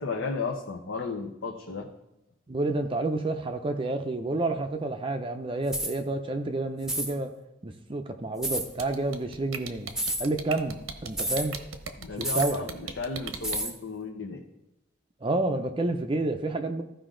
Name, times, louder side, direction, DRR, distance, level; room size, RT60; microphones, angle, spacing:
voice 1, 0.0-1.9 12.0-14.4, left 4 dB, 70° left, 0 dB, 0.9 m, -34 dB
voice 2, 2.5-7.3 7.6-9.9 10.2-11.6 12.2-12.6 15.2-16.8, right 2 dB, 25° right, 5 dB, 0.6 m, -29 dB
sound 1, 5.7-6.0 6.8-7.1 8.4-8.7 9.9-10.3 11.2-11.5 12.2-12.6 13.4-13.8, right 1 dB, 5° right, 0.8 m, -30 dB
sound 2, 8.6-13.6, right 6 dB, 85° right, 0.9 m, -37 dB
15.0 x 5.1 x 3.8 m, 0.92 s
head